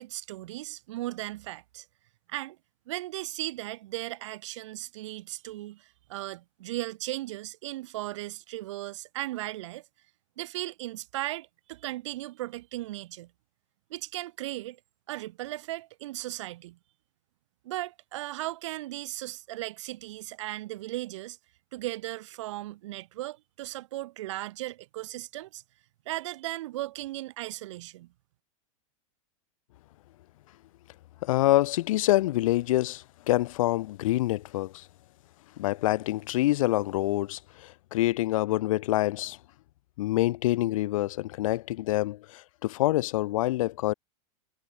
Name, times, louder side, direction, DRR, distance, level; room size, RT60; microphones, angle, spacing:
voice 1, 0.0-1.8 2.3-2.6 2.9-9.8 10.4-13.3 13.9-14.8 15.1-16.8 17.6-21.4 21.7-25.6 26.1-28.1, right 16 dB, 60° right, 1.0 m, -37 dB
voice 2, 31.2-34.8 35.6-39.4 40.0-43.9, left 16 dB, 75° left, 0.4 m, -26 dB
supercardioid pair, 175°, 18 cm